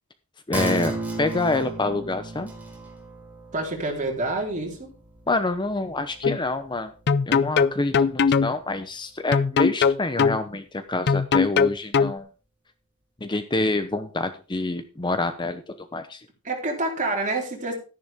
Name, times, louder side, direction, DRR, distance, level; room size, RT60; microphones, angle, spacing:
voice 1, 0.5-2.5 5.3-6.9 7.3-12.3 13.2-16.3, left 2 dB, 20° left, 10 dB, 0.7 m, -27 dB
sound 1, 0.5-7.5 7.9-8.0, right 2 dB, 5° right, 4.0 m, -35 dB
voice 2, 3.5-4.9 16.4-17.8, right 2 dB, 35° right, 0 dB, 4.0 m, -27 dB
sound 2, 6.2-6.4 7.1-8.5 9.3-10.4 11.1-12.1, left 5 dB, 50° left, 0.5 m, -20 dB
12.5 x 10.5 x 3.6 m, 0.35 s
head